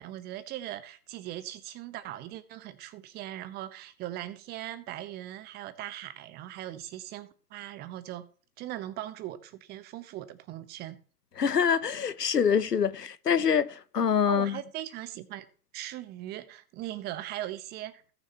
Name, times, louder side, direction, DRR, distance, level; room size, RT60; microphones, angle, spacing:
voice 1, 0.0-8.3 8.6-11.0 14.3-15.5 15.7-18.1, right 13 dB, 20° right, 0.8 m, -39 dB
voice 2, 11.4-14.6, left 7 dB, 85° left, 0.8 m, -25 dB
17.5 x 6.5 x 2.8 m
figure-of-eight pair, 105°, 46 cm